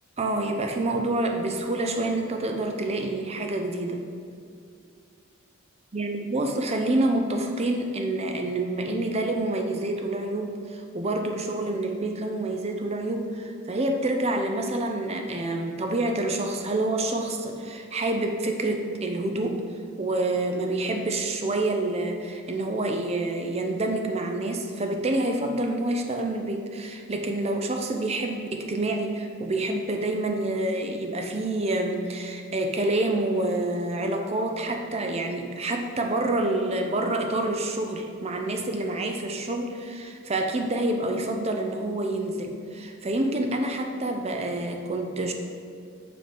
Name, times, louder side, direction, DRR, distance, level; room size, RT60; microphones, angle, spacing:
voice 1, 0.2-4.0 5.9-19.6 20.0-45.3, right 2 dB, 30° right, 4 dB, 0.6 m, -27 dB
7.7 x 3.8 x 5.2 m, 2.3 s
head